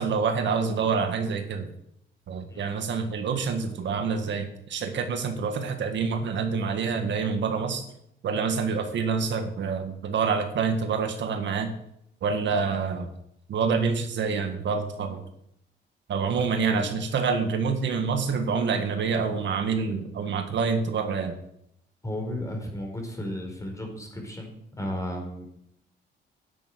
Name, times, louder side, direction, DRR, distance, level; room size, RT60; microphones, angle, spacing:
voice 1, 0.0-1.7 2.3-7.9 8.2-11.7 12.2-13.1 13.5-15.2 16.1-21.3, right 5 dB, 65° right, 6 dB, 1.8 m, -27 dB
voice 2, 22.0-25.4, left 1 dB, 15° left, 2 dB, 4.6 m, -34 dB
10.0 x 8.4 x 7.8 m, 0.76 s
cardioid pair, 90°, 20 cm